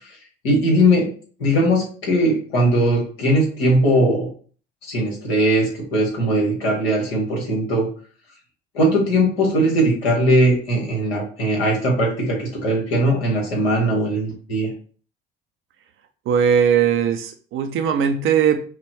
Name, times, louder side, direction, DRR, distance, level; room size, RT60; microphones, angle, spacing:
voice 1, 0.4-1.1 1.4-4.3 4.9-7.9 8.7-14.7, equal, 75° left, -1 dB, 1.6 m, -19 dB
voice 2, 16.3-18.6, right 7 dB, 45° right, 6 dB, 0.5 m, -19 dB
5.5 x 2.1 x 3.1 m, 0.42 s
hypercardioid pair, 65°, 30 cm